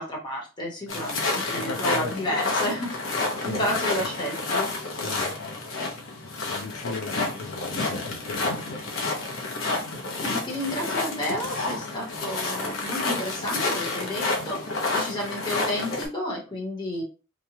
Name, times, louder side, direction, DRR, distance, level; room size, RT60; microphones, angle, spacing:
voice 1, 0.0-3.2 3.4-4.7 10.1-14.6 14.9-17.0, equal, 20° left, 1.0 m, -31 dB
sound 1, 0.9-16.1, left 3 dB, 70° left, 0.8 m, -29 dB
voice 2, 1.5-2.2 3.4-3.8 5.0-8.6, left 4 dB, 90° left, 0.4 m, -37 dB
3.0 x 2.2 x 2.8 m
head